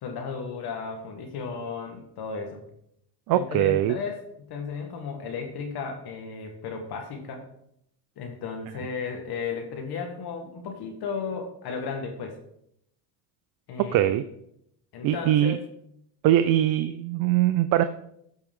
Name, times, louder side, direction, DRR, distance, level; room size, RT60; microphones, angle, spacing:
voice 1, 0.0-2.6 3.3-7.4 8.2-12.4 13.7-14.1 14.9-15.6, left 5 dB, 50° left, 3 dB, 1.7 m, -34 dB
voice 2, 3.3-4.0 13.8-14.2 15.0-15.6 16.2-17.8, right 12 dB, 50° right, 11 dB, 0.5 m, -22 dB
13.5 x 4.5 x 3.7 m, 0.74 s
supercardioid pair, 95°, 47 cm